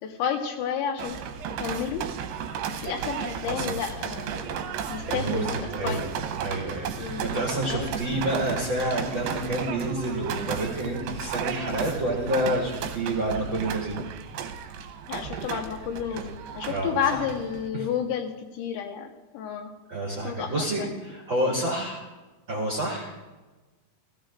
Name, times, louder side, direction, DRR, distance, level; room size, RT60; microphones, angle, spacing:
voice 1, 0.0-1.2 1.6-2.1 2.7-4.6 4.9-5.6 5.8-6.0 7.0-7.4 7.7-8.0 15.1-19.7 20.2-20.9, left 7 dB, 80° left, 3 dB, 3.3 m, -31 dB
sound 1, 1.0-17.7, right 7 dB, 80° right, 2.7 m, -34 dB
voice 2, 3.4-3.8 5.0-6.1 6.4-14.0 16.7-16.9 17.7-17.9 19.9-22.0 22.5-23.1, right 1 dB, 45° right, -5 dB, 1.6 m, -29 dB
16.0 x 16.0 x 2.5 m, 1.2 s
omnidirectional pair, 5.0 m